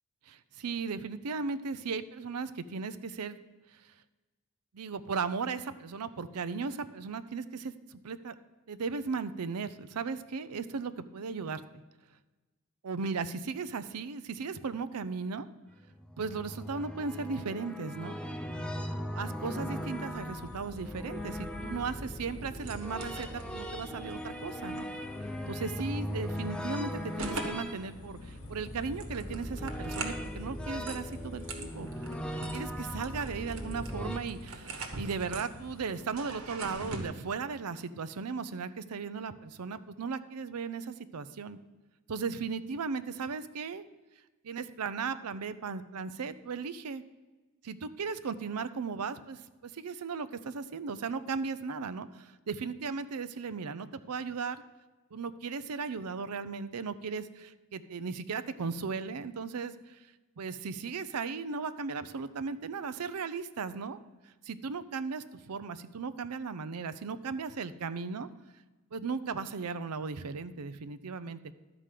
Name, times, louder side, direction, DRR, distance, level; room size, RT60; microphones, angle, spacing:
voice 1, 0.3-3.4 3.7-3.9 4.7-8.4 8.7-11.8 12.8-15.5 16.2-18.1 19.1-24.9 25.5-31.9 32.5-41.6 42.1-43.8 44.4-47.0 47.6-54.6 55.1-60.1 60.4-64.0 64.4-68.3 68.9-71.4, right 5 dB, 90° right, 13 dB, 0.5 m, -36 dB
sound 1, 15.9-34.2, equal, 5° left, 0.5 m, -39 dB
sound 2, 19.6-36.1, left 4 dB, 65° left, 0.5 m, -52 dB
sound 3, 22.5-37.1, right 3 dB, 65° right, 1.3 m, -44 dB
11.5 x 5.0 x 7.4 m, 1.2 s
head